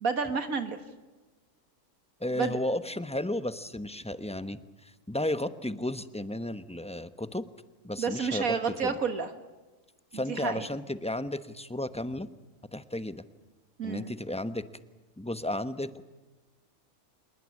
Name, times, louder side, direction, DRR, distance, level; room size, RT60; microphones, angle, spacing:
voice 1, 0.0-0.8 2.4-2.6 8.0-9.3 10.3-10.7 13.8-14.1, right 5 dB, 70° right, 9 dB, 2.0 m, -30 dB
voice 2, 2.2-7.4 7.8-8.9 10.1-12.3 12.7-13.2 13.8-14.6 15.2-16.0, left 1 dB, 5° left, 12 dB, 0.8 m, -33 dB
26.5 x 21.0 x 8.5 m, 1.2 s
omnidirectional pair, 1.6 m